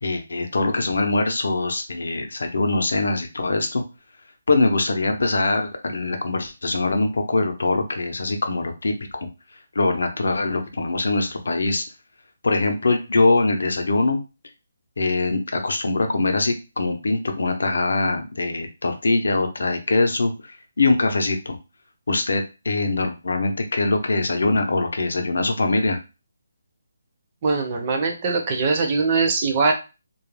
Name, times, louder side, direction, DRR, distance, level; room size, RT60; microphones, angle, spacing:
voice 1, 0.0-3.8 4.5-9.3 9.7-11.8 12.4-14.2 15.0-21.6 22.1-26.0, left 2 dB, 65° left, 5 dB, 0.6 m, -22 dB
voice 2, 27.4-29.7, right 4 dB, 20° right, 2 dB, 0.4 m, -21 dB
2.3 x 2.0 x 3.1 m, 0.29 s
hypercardioid pair, 180°, 0 cm